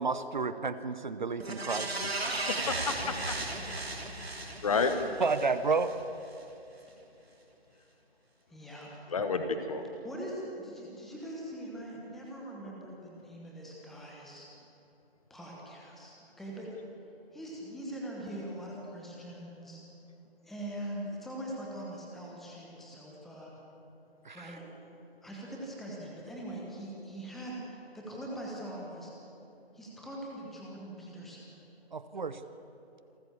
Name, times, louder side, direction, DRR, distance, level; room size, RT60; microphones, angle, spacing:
voice 1, 0.0-1.9 5.2-5.9 24.2-24.5 31.9-32.4, right 4 dB, 45° right, 12 dB, 0.9 m, -31 dB
sound 1, 1.4-5.9 6.3-6.4, right 2 dB, 70° right, 3.1 m, -36 dB
voice 2, 2.5-3.4 4.6-4.9 9.1-9.8, left 5 dB, 35° left, 7 dB, 1.5 m, -30 dB
voice 3, 8.5-8.9 10.0-14.5 15.3-16.7 17.3-19.8 20.4-23.5 24.3-24.7 25.2-29.1 29.7-31.6 32.1-32.2, right 1 dB, ahead, -3 dB, 1.0 m, -42 dB
27.0 x 13.5 x 7.2 m, 2.9 s
figure-of-eight pair, 150°, 32 cm